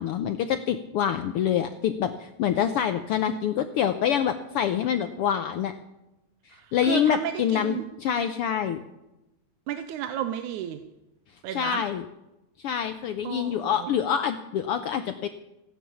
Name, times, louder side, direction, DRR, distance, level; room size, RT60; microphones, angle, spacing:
voice 1, 0.0-5.7 6.7-8.8 11.5-12.0 12.6-15.3, left 9 dB, 85° left, 9 dB, 1.2 m, -26 dB
voice 2, 6.5-7.8 9.7-10.8 11.4-11.8 13.2-13.9, right 10 dB, 85° right, 9 dB, 2.2 m, -32 dB
16.5 x 10.0 x 7.1 m, 0.95 s
omnidirectional pair, 3.4 m